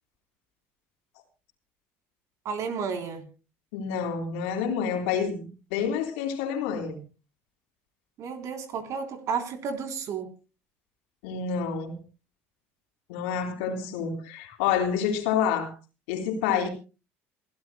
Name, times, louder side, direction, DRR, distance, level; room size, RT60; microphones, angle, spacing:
voice 1, 2.4-3.2 8.2-10.3 16.5-16.7, right 6 dB, 60° right, 3.5 m, -32 dB
voice 2, 3.7-5.4 5.7-7.0 11.2-12.0 13.1-15.7 16.1-16.7, left 7 dB, 80° left, 3.7 m, -28 dB
29.0 x 12.5 x 2.2 m
hypercardioid pair, 65°, 6 cm